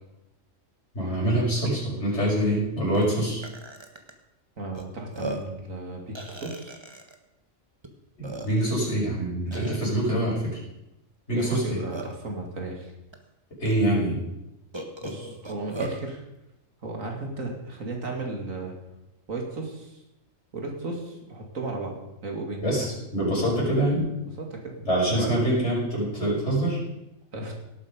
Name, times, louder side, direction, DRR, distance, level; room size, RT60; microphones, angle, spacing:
voice 1, 0.9-3.4 8.2-10.6 11.3-11.8 13.6-14.2 22.6-24.1 24.8-26.8, right 1 dB, 55° left, -5 dB, 6.3 m, -25 dB
Burping eructation, 1.6-1.7 2.1-2.3 2.9-3.1 3.4-4.1 4.7-4.8 5.1-5.6 6.1-7.1 7.8-7.9 8.2-8.8 9.5-9.9 11.4-12.3 13.1-13.2 13.6-13.7 14.7-16.0, right 2 dB, 20° right, 1.3 m, -37 dB
voice 2, 4.6-6.8 11.3-12.9 15.0-16.2 16.8-18.8 19.3-20.0 20.5-22.6 24.4-24.8 25.1-25.3 27.3-27.5, right 2 dB, 85° right, 1 dB, 2.9 m, -35 dB
18.0 x 8.4 x 5.2 m, 0.91 s
omnidirectional pair, 1.4 m